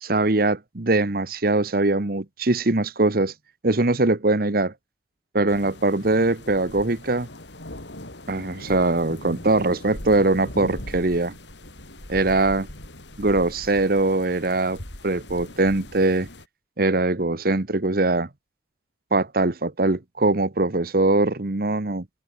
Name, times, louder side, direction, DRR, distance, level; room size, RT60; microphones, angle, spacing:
voice 1, 0.0-3.3 3.6-4.7 5.3-7.3 8.3-11.3 12.1-12.7 13.2-16.3 16.8-18.3 19.1-22.0, right 2 dB, 55° right, 1.2 m, -22 dB
sound 1, 5.5-16.4, left 1 dB, 80° left, 7.3 m, -40 dB
head